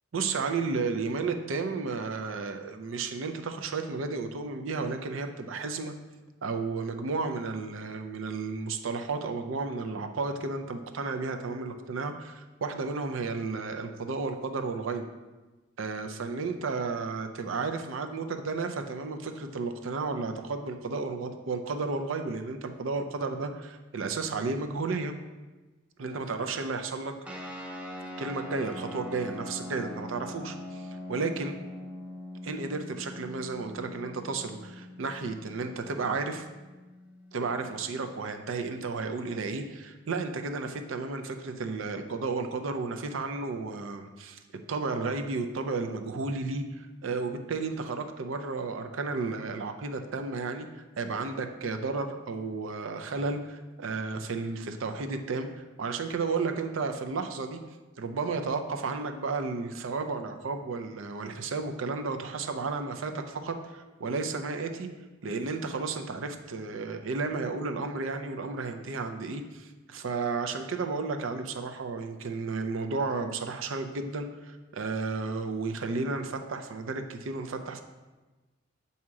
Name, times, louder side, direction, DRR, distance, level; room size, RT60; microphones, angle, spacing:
voice 1, 0.1-5.9 6.4-15.0 15.8-25.1 26.0-27.1 28.2-31.6 32.4-36.4 37.3-44.4 44.7-50.7 51.0-57.6 58.0-64.9 65.2-77.8, right 4 dB, 75° right, 6 dB, 0.5 m, -33 dB
sound 1, 27.2-38.2, left 1 dB, 5° right, 0.6 m, -42 dB
7.4 x 2.8 x 4.7 m, 1.2 s
head